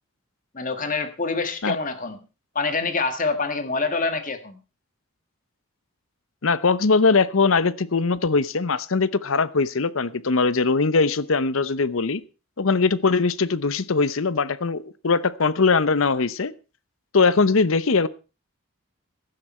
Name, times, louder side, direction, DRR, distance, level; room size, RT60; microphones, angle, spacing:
voice 1, 0.5-2.2 2.6-4.6, left 4 dB, 40° left, 9 dB, 1.8 m, -26 dB
voice 2, 6.4-12.2 12.6-16.5 17.1-18.1, left 4 dB, 75° left, 17 dB, 0.8 m, -21 dB
15.5 x 12.0 x 4.4 m, 0.33 s
head